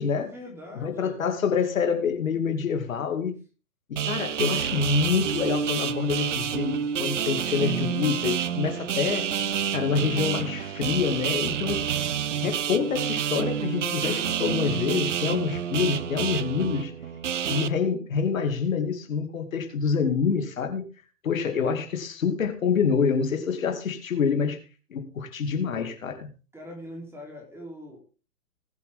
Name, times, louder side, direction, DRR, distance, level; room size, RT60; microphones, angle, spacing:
voice 1, 0.2-1.2 26.5-28.0, equal, 5° right, 1 dB, 3.6 m, -42 dB
voice 2, 0.8-3.3 4.0-9.2 9.7-11.9 12.4-16.9 17.5-20.8 21.2-24.6 24.9-26.3, left 6 dB, 50° left, 5 dB, 2.6 m, -26 dB
sound 1, 4.0-17.7, right 8 dB, 45° right, 0.9 m, -28 dB
20.0 x 8.4 x 3.7 m, 0.34 s
figure-of-eight pair, 120°, 49 cm